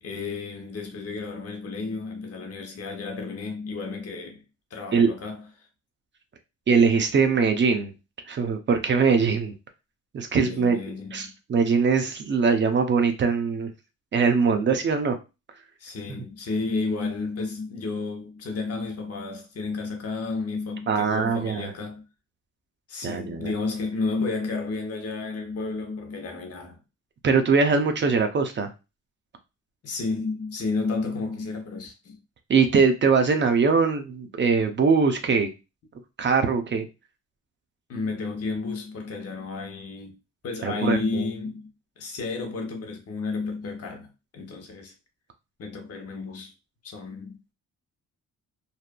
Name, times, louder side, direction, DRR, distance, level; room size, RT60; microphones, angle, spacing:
voice 1, 0.0-4.4 4.7-5.7 10.3-11.3 15.8-22.0 22.9-26.8 29.8-32.2 37.9-40.2 40.4-41.7 42.0-44.9 45.6-46.5 46.8-47.5, left 3 dB, 50° left, 0.9 m, -32 dB
voice 2, 6.7-7.9 8.3-9.5 10.1-10.8 11.1-13.7 14.1-15.2 20.9-21.7 23.0-23.5 27.2-28.7 32.5-35.5 36.2-36.9 40.6-41.2, right 5 dB, 40° right, 0.5 m, -22 dB
2.6 x 2.4 x 2.2 m
cardioid pair, 90°, 30 cm